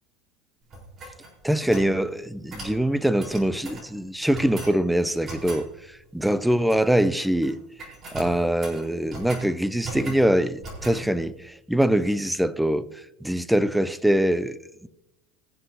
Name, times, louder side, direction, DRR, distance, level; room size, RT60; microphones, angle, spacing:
sound 1, 0.7-1.9 2.5-2.8 3.2-3.9 4.3-4.8 5.2-5.7 6.5-7.1 7.3-7.5 7.8-9.5 9.8-10.3 10.6-11.0, right 2 dB, 30° right, 4.6 m, -38 dB
voice 1, 1.4-5.7 6.1-7.6 8.1-12.9 13.2-14.9, right 1 dB, ahead, 0.4 m, -23 dB
22.0 x 7.4 x 2.9 m
supercardioid pair, 145°, 0 cm